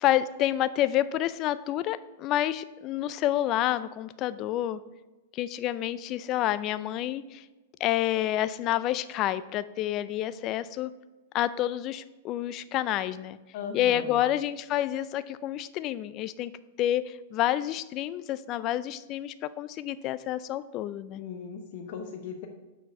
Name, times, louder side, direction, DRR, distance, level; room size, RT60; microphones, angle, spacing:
voice 1, 0.0-4.8 5.3-7.4 7.8-10.9 11.3-13.4 13.7-16.5 16.8-21.2, left 13 dB, 40° left, 15 dB, 0.3 m, -29 dB
voice 2, 13.5-14.2 21.1-22.5, left 6 dB, 60° left, 4 dB, 0.8 m, -38 dB
6.3 x 4.5 x 6.6 m, 1.2 s
hypercardioid pair, 125°, 0 cm